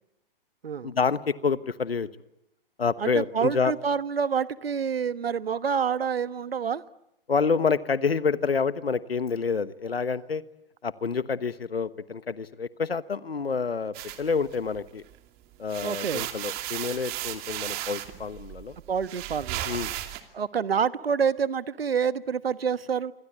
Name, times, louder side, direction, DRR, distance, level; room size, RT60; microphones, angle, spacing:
voice 1, 0.8-2.1 2.8-3.7 7.3-10.4 10.8-15.0 15.6-18.8 19.6-19.9, left 5 dB, 90° left, 1.2 m, -28 dB
voice 2, 3.0-6.8 15.8-16.3 18.9-19.7 20.3-23.1, right 6 dB, 80° right, 1.2 m, -27 dB
sound 1, 13.9-15.1 15.5-20.2, right 14 dB, 30° right, 2.7 m, -35 dB
26.0 x 26.0 x 8.6 m
hypercardioid pair, 120°, 29 cm